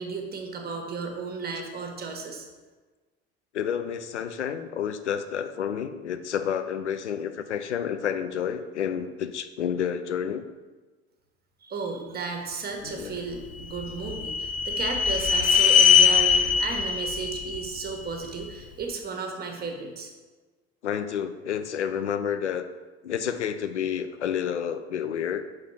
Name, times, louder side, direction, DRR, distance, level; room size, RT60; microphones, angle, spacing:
voice 1, 0.0-2.5 11.6-20.1, right 4 dB, 25° right, 3 dB, 1.2 m, -34 dB
voice 2, 3.5-10.4 12.8-13.2 20.8-22.7 23.0-25.4, left 8 dB, 80° left, 9 dB, 0.5 m, -30 dB
sound 1, 13.3-18.5, left 7 dB, 25° left, 0.5 m, -22 dB
6.4 x 3.3 x 5.5 m, 1.3 s
figure-of-eight pair, 60°, 34 cm